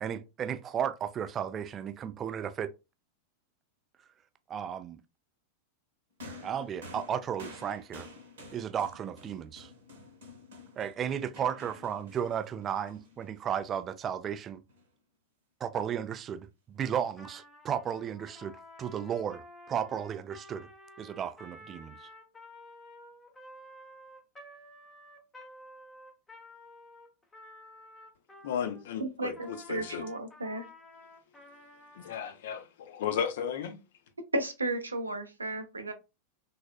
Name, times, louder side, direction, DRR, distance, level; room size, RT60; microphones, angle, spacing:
voice 1, 0.0-2.7 4.5-5.0 6.4-8.1 8.5-9.7 10.8-14.6 15.6-20.7 21.0-22.1, right 8 dB, 25° right, 0.3 m, -34 dB
sound 1, 6.2-13.7 14.7-14.8, left 2 dB, 60° right, 0.9 m, -50 dB
Trumpet, 17.1-28.9 29.3-32.3, left 1 dB, 15° left, 0.7 m, -52 dB
voice 2, 28.4-30.0 32.0-33.8, left 8 dB, 55° left, 0.5 m, -34 dB
voice 3, 29.0-30.7 34.3-35.9, right 2 dB, 80° right, 0.5 m, -34 dB
3.3 x 2.2 x 2.3 m
figure-of-eight pair, 90°, 0 cm